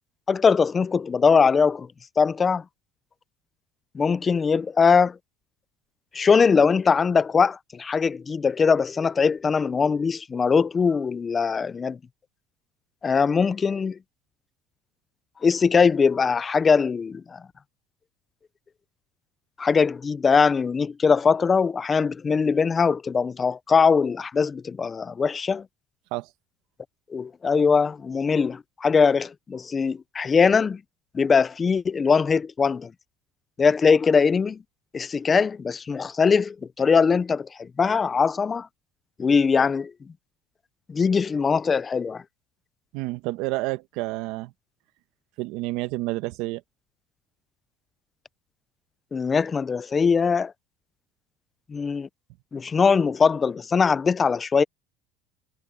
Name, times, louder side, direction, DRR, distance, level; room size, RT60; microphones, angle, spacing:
voice 1, 0.3-1.9 2.2-2.6 3.9-5.2 6.1-12.0 13.0-14.0 15.4-17.4 19.6-25.7 27.1-30.8 31.1-32.9 33.6-34.6 34.9-38.7 39.2-39.9 40.9-42.2 49.1-50.5 51.7-52.1 52.5-54.6, left 5 dB, 25° left, 0.6 m, -21 dB
voice 2, 42.9-44.5 45.4-46.6, right 20 dB, 70° right, 1.3 m, -29 dB
supercardioid pair, 110°, 0 cm